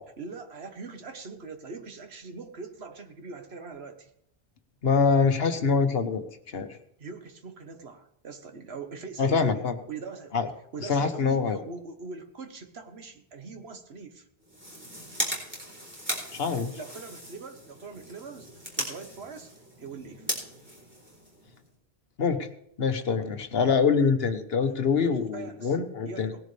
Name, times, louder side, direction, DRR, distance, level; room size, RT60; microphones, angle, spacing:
voice 1, 0.2-4.1 7.0-10.4 10.7-14.3 16.8-18.5 18.7-19.5 19.8-20.3 25.3-25.8 26.0-26.4, right 4 dB, 80° right, 6 dB, 1.6 m, -42 dB
voice 2, 4.8-6.7 9.2-9.7 10.3-10.5 10.8-11.6 16.3-16.7 22.2-22.5 22.8-26.3, left 5 dB, 70° left, 8 dB, 1.4 m, -25 dB
sound 1, 14.4-21.7, equal, 10° right, 4.1 m, -37 dB
19.0 x 11.0 x 3.4 m, 0.72 s
omnidirectional pair, 1.0 m